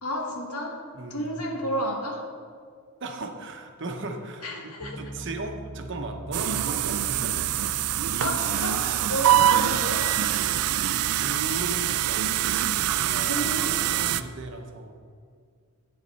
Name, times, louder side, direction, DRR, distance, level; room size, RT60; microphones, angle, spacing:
voice 1, 0.0-2.2 4.4-5.0 8.2-10.1 13.3-13.9, equal, 85° left, 1 dB, 1.5 m, -31 dB
voice 2, 0.9-1.5 3.0-7.4 9.5-9.8 11.2-12.2 13.0-13.4 13.9-15.0, right 2 dB, 55° right, 4 dB, 0.9 m, -37 dB
Piano, 4.8-14.4, right 2 dB, 15° left, 0.5 m, -43 dB
sound 1, 6.3-14.2, right 12 dB, 80° right, 0.4 m, -24 dB
8.6 x 8.2 x 4.2 m, 2.1 s
head